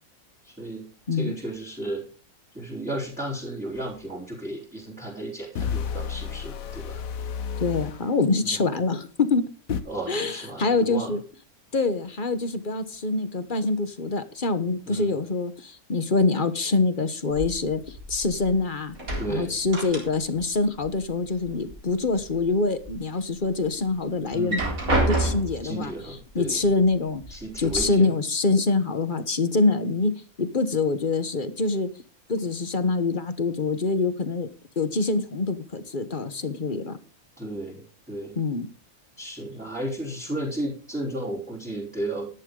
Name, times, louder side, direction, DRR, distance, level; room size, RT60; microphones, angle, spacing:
voice 1, 0.4-2.1 2.5-7.0 8.4-8.6 9.9-11.2 14.9-15.2 19.2-19.6 24.3-24.7 25.6-26.6 27.3-28.2 37.4-38.4 39.2-42.3, right 1 dB, 5° right, -6 dB, 3.6 m, -34 dB
sound 1, 3.8-3.9 5.6-8.0 9.7-9.8, left 7 dB, 70° left, 1.3 m, -31 dB
voice 2, 7.6-9.4 9.7-9.8 10.1-11.2 11.7-19.0 19.3-24.6 25.1-25.9 26.3-30.1 30.4-31.9 32.3-34.5 34.8-37.0 38.4-38.7, left 3 dB, 35° left, 11 dB, 1.2 m, -25 dB
sound 2, 17.3-18.6 18.9-20.5 20.8-21.8 22.2-22.9 23.4-23.5 24.3-25.7 26.6-26.7 27.2-27.8, right 2 dB, 65° right, 4.5 m, -28 dB
14.0 x 11.0 x 3.8 m, 0.37 s
omnidirectional pair, 1.6 m